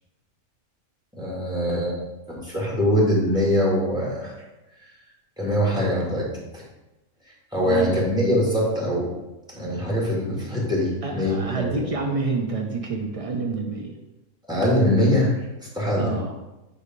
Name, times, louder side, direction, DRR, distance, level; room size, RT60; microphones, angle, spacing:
voice 1, 1.1-2.0 2.3-4.3 5.4-6.6 7.5-9.1 9.5-11.8 14.5-15.3 15.7-16.1, equal, 5° right, -5 dB, 1.8 m, -23 dB
voice 2, 7.6-8.0 11.0-14.0 16.0-16.3, right 4 dB, 70° right, 2 dB, 0.3 m, -28 dB
8.1 x 2.8 x 5.1 m, 1.0 s
omnidirectional pair, 1.4 m